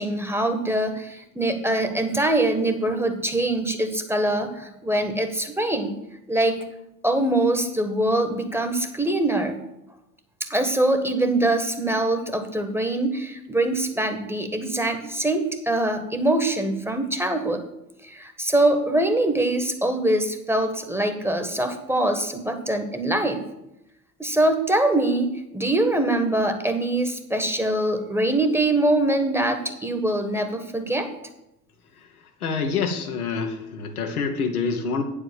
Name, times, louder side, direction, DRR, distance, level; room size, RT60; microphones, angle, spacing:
voice 1, 0.0-5.9 6.3-6.6 7.0-9.6 10.5-17.6 18.0-23.4 24.2-31.1, right 1 dB, 5° right, 7 dB, 1.3 m, -23 dB
voice 2, 32.4-35.0, left 5 dB, 85° left, 4 dB, 1.1 m, -26 dB
8.8 x 5.0 x 7.4 m, 0.86 s
figure-of-eight pair, 60°, 43 cm